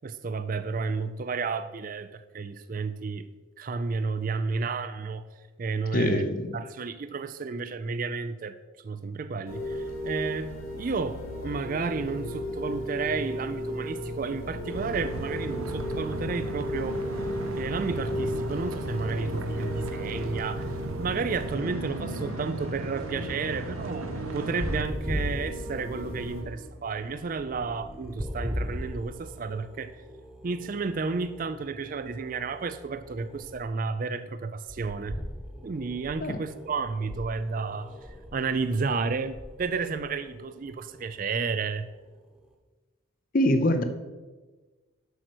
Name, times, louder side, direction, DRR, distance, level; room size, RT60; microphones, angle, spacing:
voice 1, 0.0-3.3 3.6-5.2 5.6-6.3 6.5-8.6 8.8-17.0 17.5-20.7 21.0-30.0 30.4-35.2 35.6-41.9, right 4 dB, 40° right, 12 dB, 0.4 m, -32 dB
voice 2, 5.9-6.6 36.2-36.4 43.3-43.8, left 1 dB, 40° left, 9 dB, 0.6 m, -24 dB
sound 1, 9.5-26.4, left 1 dB, 85° left, 2.1 m, -35 dB
sound 2, 14.7-24.8, right 2 dB, 80° right, 0.7 m, -36 dB
sound 3, 24.6-33.7 34.7-42.3, equal, 5° right, 1.0 m, -39 dB
8.1 x 6.4 x 6.2 m, 1.3 s
head